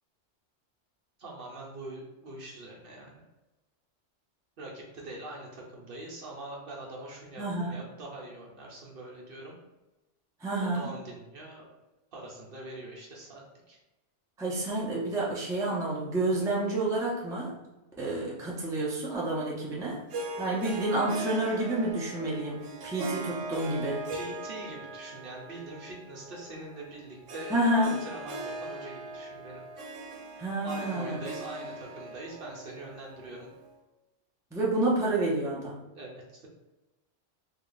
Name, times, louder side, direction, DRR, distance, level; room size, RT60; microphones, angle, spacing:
voice 1, 1.2-3.2 4.6-9.6 10.6-11.8 12.1-13.8 24.1-29.6 30.6-33.5 35.9-36.5, right 1 dB, 55° right, -2 dB, 0.9 m, -43 dB
voice 2, 7.4-7.8 10.4-10.9 14.4-17.6 18.0-20.0 20.4-24.0 27.5-28.0 30.4-31.2 34.5-35.8, right 2 dB, 5° right, -5 dB, 0.5 m, -29 dB
Harp, 20.1-33.7, right 2 dB, 90° right, 1.0 m, -40 dB
3.3 x 2.3 x 3.9 m, 1.0 s
omnidirectional pair, 1.2 m